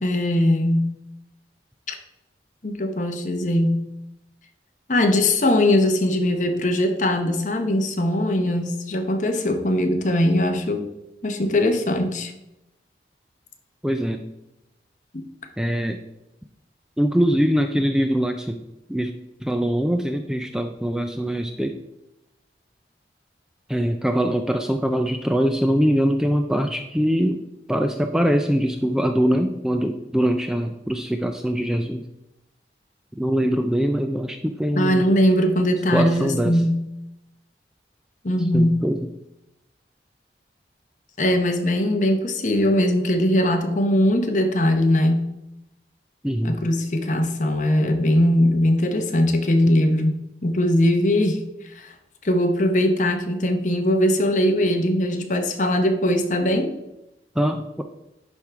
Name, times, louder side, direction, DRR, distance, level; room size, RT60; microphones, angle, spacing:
voice 1, 0.0-0.9 2.6-3.9 4.9-10.9 11.2-12.3 34.7-36.9 38.2-38.9 41.2-45.3 46.4-51.4 51.7-51.9 52.2-56.7, left 1 dB, 45° left, 6 dB, 0.9 m, -20 dB
voice 2, 13.8-14.2 15.6-16.0 17.0-18.6 18.9-19.1 19.4-21.8 23.7-27.4 27.7-32.0 33.1-35.1 35.9-36.5 38.5-39.1 46.2-46.6 57.4-57.8, equal, 5° right, 6 dB, 0.3 m, -22 dB
10.5 x 3.6 x 4.5 m, 0.91 s
head